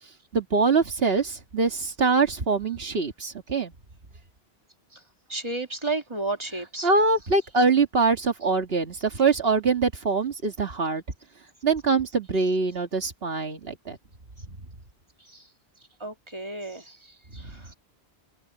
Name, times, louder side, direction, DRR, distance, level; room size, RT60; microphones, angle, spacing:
voice 1, 0.3-3.7 6.8-11.0 11.6-14.0 17.4-17.5, right 4 dB, 65° right, 2.1 m, -24 dB
voice 2, 5.3-6.9 15.3-15.5 16.0-17.7, right 3 dB, 25° right, 2.2 m, -33 dB
omnidirectional pair, 1.1 m